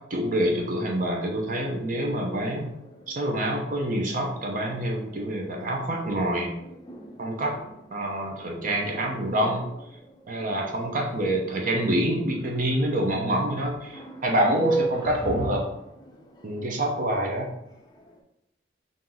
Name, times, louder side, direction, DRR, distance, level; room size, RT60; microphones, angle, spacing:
voice 1, 0.0-2.7 3.1-6.5 7.2-7.6 7.9-9.7 10.3-15.6 16.4-17.5, right 1 dB, 45° right, 0 dB, 0.7 m, -26 dB
sound 1, 1.4-18.2, right 2 dB, 25° left, 0.5 m, -39 dB
sound 2, 12.3-13.2 14.6-15.8, left 1 dB, 15° right, 1.6 m, -38 dB
4.3 x 2.6 x 3.8 m, 0.79 s
head